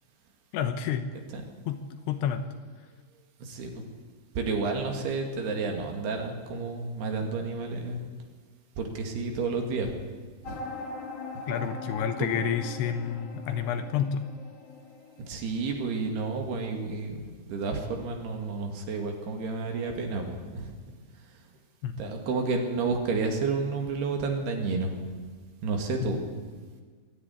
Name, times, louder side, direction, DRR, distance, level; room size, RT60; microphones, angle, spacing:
voice 1, 0.5-1.1 1.7-2.4 11.5-14.3 21.8-22.2 26.0-26.2, left 8 dB, 75° left, 8 dB, 2.9 m, -30 dB
voice 2, 3.4-3.8 4.4-8.0 8.8-9.9 10.5-10.6 12.2-12.3 15.2-20.7 22.0-24.9 25.6-26.4, right 4 dB, 65° right, 3 dB, 4.1 m, -31 dB
sound 1, 10.4-16.0, left 3 dB, 50° left, 2.1 m, -41 dB
21.0 x 13.5 x 10.0 m, 1.5 s
omnidirectional pair, 5.1 m